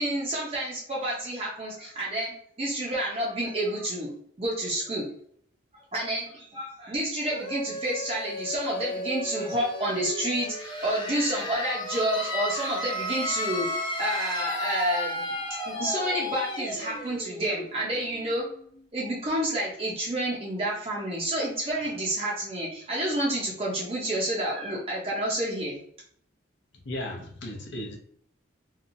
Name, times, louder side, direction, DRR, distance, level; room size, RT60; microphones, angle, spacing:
voice 1, 0.0-2.3 2.6-4.1 4.4-5.1 5.9-13.7 14.0-15.4 15.6-18.4 18.9-25.8, right 1 dB, 30° right, -4 dB, 0.6 m, -29 dB
sound 1, 7.3-18.8, left 1 dB, 20° left, 0.5 m, -34 dB
voice 2, 26.8-28.0, left 1 dB, 60° left, 2 dB, 0.6 m, -35 dB
2.8 x 2.3 x 2.6 m, 0.62 s
head